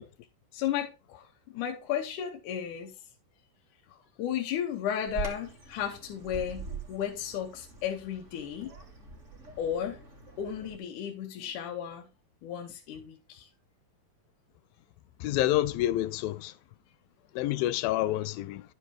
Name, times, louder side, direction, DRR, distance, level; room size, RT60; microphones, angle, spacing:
voice 1, 0.5-2.9 3.9-8.7 9.6-10.0 10.4-12.1 12.4-13.5, left 9 dB, 70° left, 2.2 m, -34 dB
Bird vocalization bird call bird song, 5.1-10.8, right 4 dB, 40° right, 1.1 m, -43 dB
voice 2, 15.2-16.5 17.4-18.6, left 14 dB, 90° left, 2.4 m, -28 dB
11.0 x 6.7 x 3.0 m
omnidirectional pair, 4.0 m